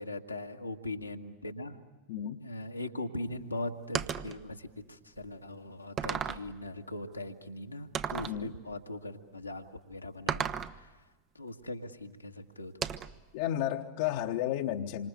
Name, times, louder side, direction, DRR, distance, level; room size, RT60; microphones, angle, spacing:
voice 1, 0.0-1.8 2.4-10.4 10.7-11.0 11.3-12.9, left 1 dB, 85° left, 1.7 m, -40 dB
voice 2, 2.1-2.4 8.3-8.5 13.3-15.1, left 11 dB, 50° left, 1.2 m, -32 dB
sound 1, 3.9-4.4 5.2-5.3 6.0-6.5 7.9-8.4 10.3-10.8 12.8-13.2, right 8 dB, 30° right, 0.9 m, -34 dB
28.0 x 25.5 x 8.1 m
figure-of-eight pair, 90°, 0 cm